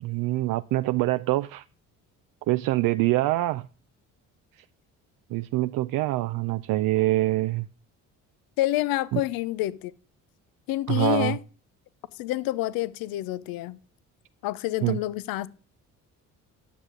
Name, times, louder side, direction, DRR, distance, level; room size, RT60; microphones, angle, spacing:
voice 1, 0.0-1.6 2.5-3.7 5.3-7.7 9.1-9.2 10.9-11.4 14.8-15.0, right 17 dB, 65° right, 0.5 m, -25 dB
voice 2, 8.6-9.9 10.7-11.4 12.2-13.8 14.4-15.5, left 15 dB, 75° left, 0.7 m, -28 dB
10.5 x 6.7 x 5.0 m
supercardioid pair, 70°, 36 cm